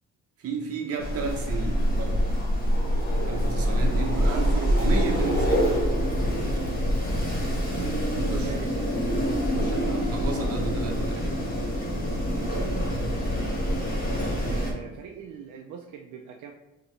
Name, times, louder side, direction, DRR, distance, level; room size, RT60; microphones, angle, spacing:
voice 1, 0.4-2.2 3.3-5.6 6.4-6.6 8.3-8.5 9.5-11.3, right 4 dB, 55° right, 2 dB, 0.9 m, -33 dB
Wind, 1.0-14.7, equal, 30° left, 1.2 m, -25 dB
voice 2, 7.8-8.8 12.3-12.9 14.4-16.5, right 6 dB, 80° right, 2 dB, 0.5 m, -39 dB
5.0 x 3.0 x 3.1 m, 1.0 s
cardioid pair, 130°, 29 cm